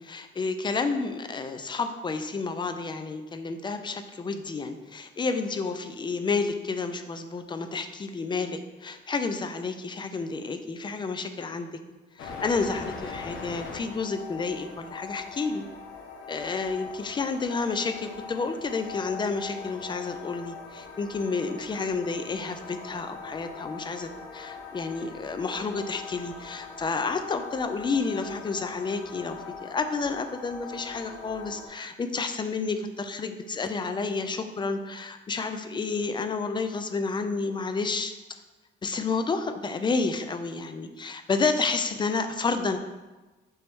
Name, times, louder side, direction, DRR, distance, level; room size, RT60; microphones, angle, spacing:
voice 1, 0.0-11.7 12.2-15.7 16.3-38.1 38.8-42.8, left 4 dB, 25° left, 8 dB, 0.3 m, -30 dB
sound 1, 12.2-31.7, left 5 dB, 80° left, 0.6 m, -41 dB
3.1 x 3.1 x 4.5 m, 1.2 s
cardioid pair, 90°, 20 cm